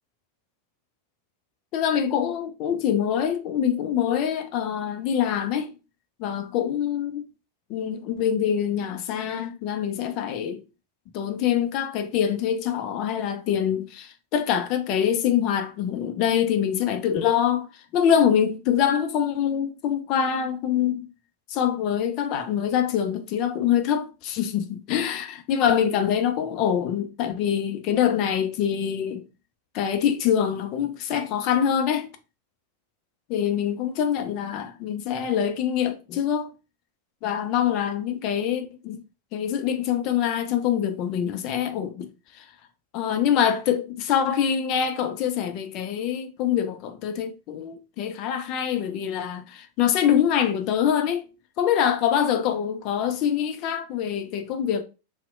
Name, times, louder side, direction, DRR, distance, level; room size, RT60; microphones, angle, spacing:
voice 1, 1.7-5.7 6.2-7.3 7.7-10.6 11.1-21.1 21.5-29.3 29.7-32.1 33.3-36.5 37.2-39.0 39.3-42.1 42.3-42.5 42.9-51.2 51.6-54.8, left 9 dB, 40° left, 0.4 m, -25 dB
2.7 x 2.0 x 2.4 m
figure-of-eight pair, 90°, 0 cm